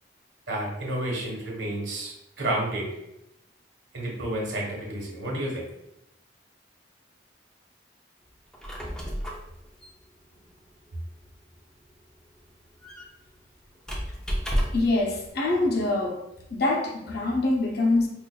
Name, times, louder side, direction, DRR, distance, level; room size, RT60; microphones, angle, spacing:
voice 1, 0.5-2.9 3.9-5.7, right 1 dB, 80° right, -3 dB, 1.3 m, -30 dB
Squeak, 8.4-15.0, equal, 5° left, 0.5 m, -34 dB
voice 2, 14.7-16.2 16.5-18.1, left 2 dB, 55° left, 1 dB, 0.7 m, -24 dB
5.2 x 2.6 x 2.3 m, 0.85 s
head